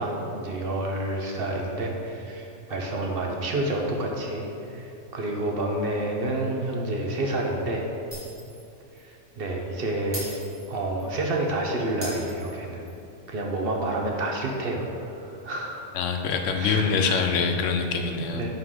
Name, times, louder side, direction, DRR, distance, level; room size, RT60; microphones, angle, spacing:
voice 1, 0.0-7.8 9.0-10.3 10.7-12.8 13.3-15.9 16.6-17.3 18.2-18.5, right 1 dB, 55° right, 0 dB, 0.9 m, -29 dB
Shatter, 8.1-8.7 9.0-9.1 10.1-11.1 12.0-13.0, equal, 20° right, 1.8 m, -39 dB
voice 2, 15.9-18.5, left 5 dB, 85° left, 5 dB, 1.0 m, -25 dB
11.0 x 4.0 x 3.7 m, 2.7 s
omnidirectional pair, 1.3 m